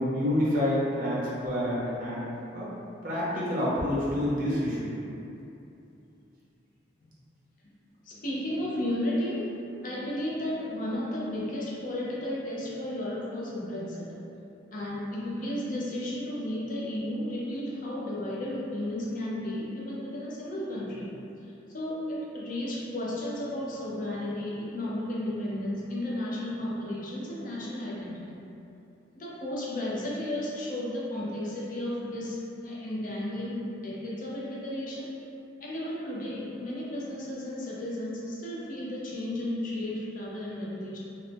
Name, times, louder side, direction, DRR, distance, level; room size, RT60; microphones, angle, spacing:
voice 1, 0.1-2.3 2.5-2.7 3.0-5.0, left 1 dB, 45° right, -8 dB, 0.6 m, -28 dB
voice 2, 8.0-9.5 9.8-14.1 14.7-21.1 21.7-28.4 29.2-35.1 35.6-41.0, left 1 dB, 45° left, -5 dB, 0.5 m, -33 dB
2.5 x 2.1 x 3.2 m, 2.8 s
head